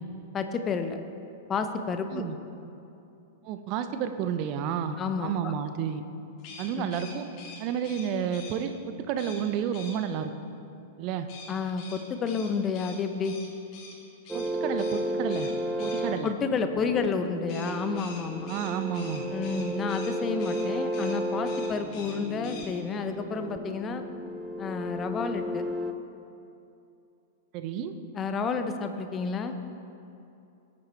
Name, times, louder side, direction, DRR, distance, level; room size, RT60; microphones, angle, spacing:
voice 1, 0.3-1.0 1.5-2.2 5.0-5.5 6.7-6.9 11.5-13.4 16.2-18.5 19.3-24.0 24.6-25.6 28.1-29.5, left 5 dB, 25° left, 8 dB, 0.9 m, -30 dB
voice 2, 3.4-6.0 6.6-7.3 7.6-10.3 11.0-11.3 14.3-15.5 15.8-16.3 18.5-19.2 27.5-27.9, right 8 dB, 40° right, 9 dB, 0.8 m, -31 dB
sound 1, 6.4-8.6 9.2-9.4 9.7-10.0 11.3-14.0 14.3-14.5 14.8-15.0 15.3-16.0 17.5-20.1 20.4-20.7 20.9-21.2 21.4-22.2 22.4-22.7, left 4 dB, 40° left, 2.6 m, -45 dB
sound 2, 14.3-25.9, equal, 10° right, 0.6 m, -33 dB
18.5 x 8.4 x 3.3 m, 2.7 s
figure-of-eight pair, 100°, 0 cm